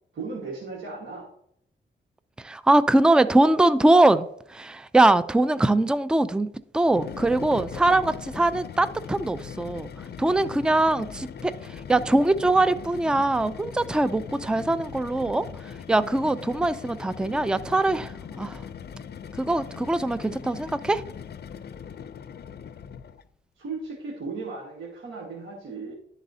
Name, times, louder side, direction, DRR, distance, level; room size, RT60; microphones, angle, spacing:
voice 1, 0.1-1.3 23.5-25.9, right 4 dB, 80° right, 1.4 m, -36 dB
voice 2, 2.4-6.5 6.7-9.9 10.2-15.5 15.9-18.6 19.4-21.0, right 2 dB, 5° right, 0.4 m, -22 dB
sound 1, 6.8-23.3, left 7 dB, 55° left, 0.5 m, -40 dB
11.5 x 4.1 x 2.7 m
cardioid pair, 60°, 20 cm